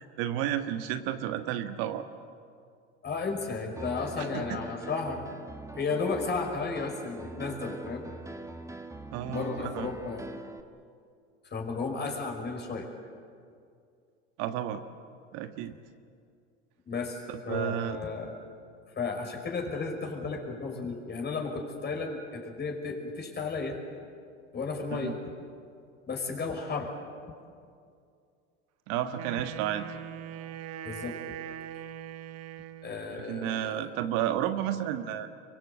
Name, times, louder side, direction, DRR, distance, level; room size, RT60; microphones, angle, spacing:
voice 1, 0.0-2.0 4.2-4.6 9.1-9.9 14.4-14.8 15.3-15.7 17.3-18.0 24.9-25.2 28.9-29.8 33.1-35.3, right 11 dB, 60° right, 8 dB, 1.6 m, -32 dB
voice 2, 3.0-5.2 5.8-8.0 9.2-10.3 11.5-12.9 16.8-18.4 18.9-23.8 24.5-25.2 26.1-26.9 30.8-31.2 32.8-33.9, left 4 dB, 25° left, 2 dB, 5.7 m, -33 dB
Piano, 3.8-10.6, right 2 dB, 10° right, 1.4 m, -43 dB
Wind instrument woodwind instrument, 29.1-33.1, right 11 dB, 40° right, 1.3 m, -41 dB
25.5 x 23.5 x 8.3 m, 2.4 s
hypercardioid pair, 95°, 37 cm